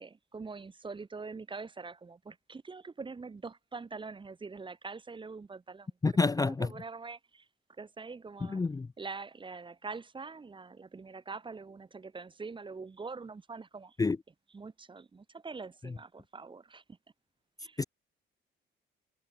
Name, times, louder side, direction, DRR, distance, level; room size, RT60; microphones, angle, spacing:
voice 1, 0.0-7.5 7.8-8.6 9.0-14.0 14.5-17.0 17.6-17.8, right 4 dB, 25° right, 1.0 m, -44 dB
voice 2, 6.0-6.7 8.5-8.9 14.0-14.2 17.8-17.9, left 3 dB, 20° left, 0.5 m, -27 dB
cardioid pair, 90°, 20 cm